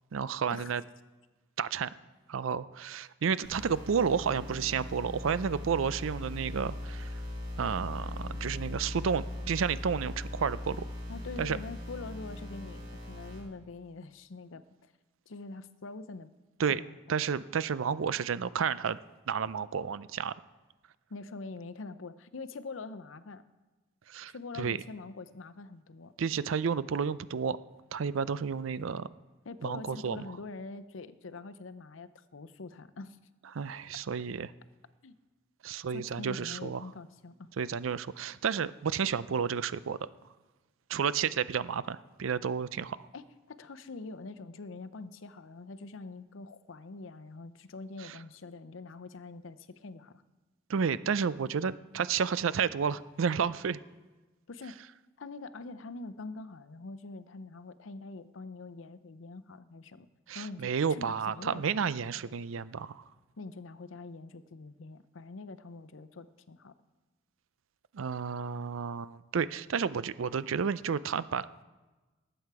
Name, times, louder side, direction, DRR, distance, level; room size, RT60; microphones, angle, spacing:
voice 1, 0.1-0.8 1.6-1.9 2.3-7.1 7.6-10.8 11.4-11.6 16.6-16.8 17.1-19.0 19.3-20.3 24.1-24.8 26.2-27.6 27.9-29.1 29.6-30.3 33.5-34.5 35.6-36.9 37.6-40.1 40.9-43.0 48.0-48.1 50.7-53.8 60.3-63.0 67.9-71.5, right 6 dB, 85° right, 16 dB, 0.5 m, -31 dB
sound 1, 3.4-13.4, left 1 dB, 45° right, 5.2 m, -40 dB
voice 2, 11.1-14.6 15.3-16.3 16.7-16.9 21.1-23.4 24.3-26.1 29.4-33.2 35.0-35.2 35.9-37.5 43.1-50.2 54.5-54.8 55.2-60.1 60.3-62.2 63.4-66.7, left 3 dB, 80° left, 11 dB, 0.7 m, -44 dB
18.5 x 8.0 x 4.8 m, 1.2 s
head